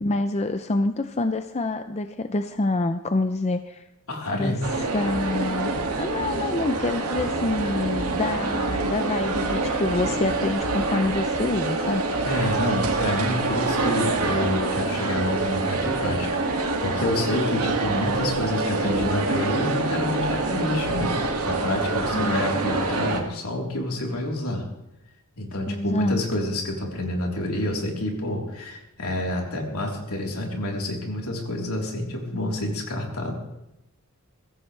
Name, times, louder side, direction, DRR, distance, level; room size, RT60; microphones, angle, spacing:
voice 1, 0.0-3.8 4.3-4.5 4.9-5.7 6.0-12.0 22.1-22.4 25.7-26.2, left 2 dB, 30° left, 8 dB, 0.6 m, -26 dB
voice 2, 4.1-4.6 12.2-24.6 25.4-33.3, left 1 dB, 70° left, -1 dB, 3.8 m, -28 dB
sound 1, 4.6-23.2, right 3 dB, 80° right, 2.2 m, -26 dB
23.0 x 15.5 x 3.3 m, 0.88 s
head